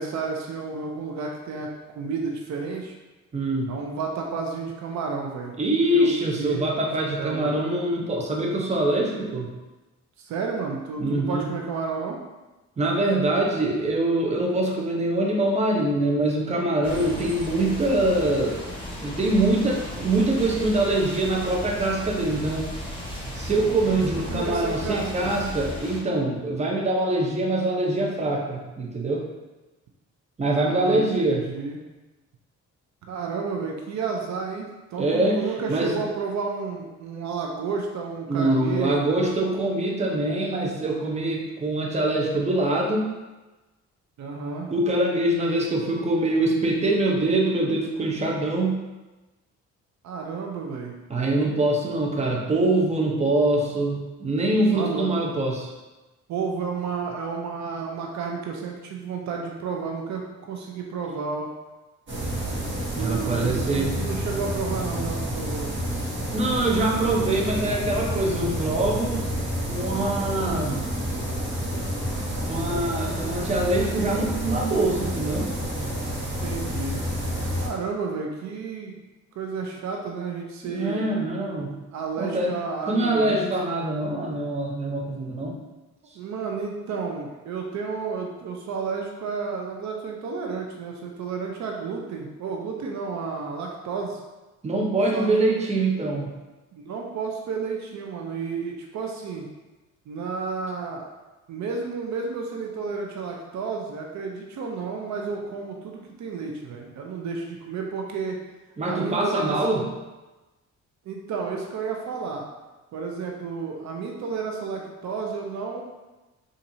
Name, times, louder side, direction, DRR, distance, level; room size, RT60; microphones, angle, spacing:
voice 1, 0.0-2.9 3.7-5.5 5.8-6.1 6.4-6.6 7.2-7.5 10.2-12.2 23.9-24.0 24.3-25.3 30.5-31.8 33.1-39.1 44.2-44.7 50.0-50.9 54.7-55.0 56.3-61.5 62.9-65.7 76.4-77.0 77.6-79.0 79.4-81.0 81.9-83.5 86.2-94.2 95.1-95.3 96.8-99.5 100.1-101.1 101.5-108.4 108.9-109.6 111.1-112.4 112.9-115.8, right 5 dB, 65° right, 1 dB, 0.5 m, -31 dB
voice 2, 3.3-3.7 5.6-9.6 11.0-11.5 12.8-18.6 19.0-22.7 23.4-29.2 30.4-31.5 35.0-35.4 35.7-36.0 38.3-43.0 44.7-48.8 51.1-55.7 63.0-64.0 66.3-69.2 69.7-70.8 72.4-75.5 80.6-81.8 82.2-82.5 82.9-85.6 94.6-96.3 108.8-109.8, right 2 dB, 20° right, -1 dB, 0.7 m, -24 dB
sound 1, 16.8-26.0, left 1 dB, 15° left, 1.4 m, -35 dB
sound 2, 62.1-77.7, right 1 dB, 40° right, 1.2 m, -29 dB
4.2 x 2.5 x 2.6 m, 1.1 s
cardioid pair, 90°, 30 cm